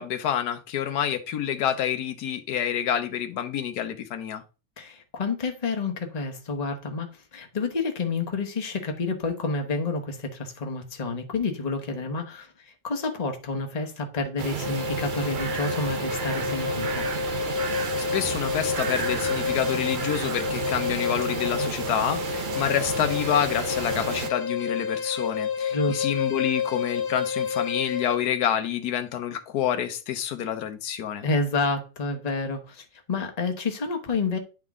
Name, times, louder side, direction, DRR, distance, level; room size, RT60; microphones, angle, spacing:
voice 1, 0.0-4.4 18.0-31.2, left 9 dB, 85° left, 1.3 m, -28 dB
voice 2, 4.8-17.1 25.7-26.1 31.2-34.4, left 3 dB, 30° left, 1.1 m, -29 dB
sound 1, 14.4-24.3, right 7 dB, 70° right, 0.4 m, -32 dB
sound 2, 14.6-28.3, left 6 dB, 55° left, 0.8 m, -30 dB
10.0 x 3.7 x 3.6 m
omnidirectional pair, 1.6 m